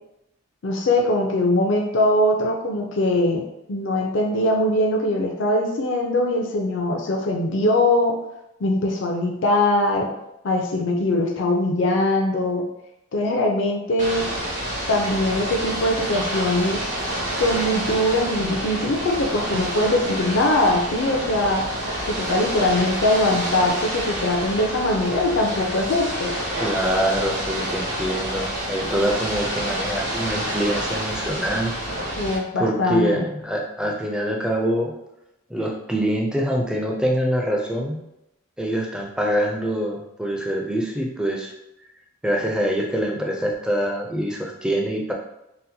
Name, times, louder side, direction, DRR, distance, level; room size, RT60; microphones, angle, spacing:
voice 1, 0.6-8.2 8.6-10.1 10.4-12.7 13.1-14.3 14.9-16.9 17.4-21.6 22.1-26.3 32.2-33.3, left 1 dB, 65° left, 1 dB, 0.5 m, -21 dB
Ocean / Boat Water vehicle, 14.0-32.4, right 1 dB, 65° right, 1.3 m, -28 dB
voice 2, 26.6-31.7 32.6-34.9 35.5-38.0 38.6-41.5 42.2-45.1, equal, 5° right, 0 dB, 0.4 m, -25 dB
4.1 x 2.1 x 2.7 m, 0.87 s
head